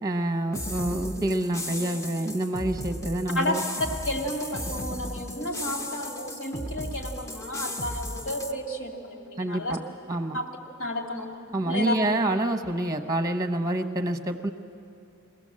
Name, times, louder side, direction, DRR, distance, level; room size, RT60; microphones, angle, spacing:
voice 1, 0.0-3.6 9.4-9.8 10.1-10.4 11.5-14.5, right 1 dB, 15° right, 7 dB, 0.9 m, -27 dB
sound 1, 0.5-8.5, equal, 15° left, 0.7 m, -35 dB
voice 2, 4.1-9.8 10.3-10.5 10.8-11.3 11.7-11.9, left 1 dB, 65° left, 2 dB, 2.4 m, -32 dB
23.0 x 17.0 x 7.5 m, 2.6 s
head